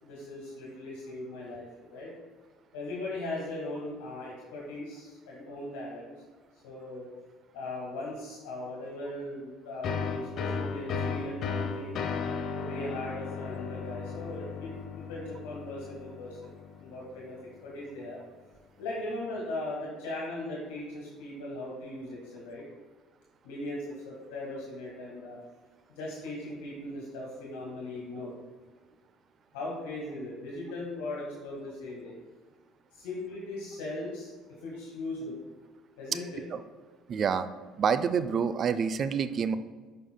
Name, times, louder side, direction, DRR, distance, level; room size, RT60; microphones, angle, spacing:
voice 1, 0.0-2.1 2.7-6.1 6.6-7.1 7.5-12.0 12.5-17.4 17.6-18.2 18.8-22.6 23.4-25.4 25.9-28.3 29.5-32.1 32.9-34.3 34.6-35.4 36.0-36.4, left 2 dB, 85° left, -4 dB, 1.6 m, -39 dB
sound 1, 9.8-17.3, left 5 dB, 60° left, 0.6 m, -35 dB
voice 2, 37.1-37.5 37.8-39.6, right 6 dB, 50° right, 12 dB, 0.4 m, -27 dB
9.2 x 5.4 x 2.2 m, 1.4 s
supercardioid pair, 75°, 0 cm